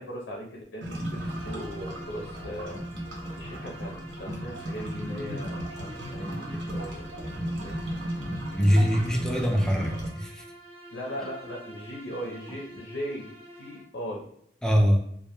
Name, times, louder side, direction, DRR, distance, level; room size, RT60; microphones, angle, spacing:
voice 1, 0.0-2.8 3.3-3.9 4.2-7.8 10.9-13.3 13.6-14.3, equal, 85° left, -2 dB, 0.5 m, -38 dB
sound 1, 0.8-10.1, equal, 80° right, 0.6 m, -35 dB
Bowed string instrument, 1.1-13.9, right 1 dB, 35° right, 0.9 m, -47 dB
voice 2, 8.5-10.5 14.6-15.0, equal, 5° left, 1 dB, 0.3 m, -23 dB
2.2 x 2.1 x 2.8 m, 0.71 s
head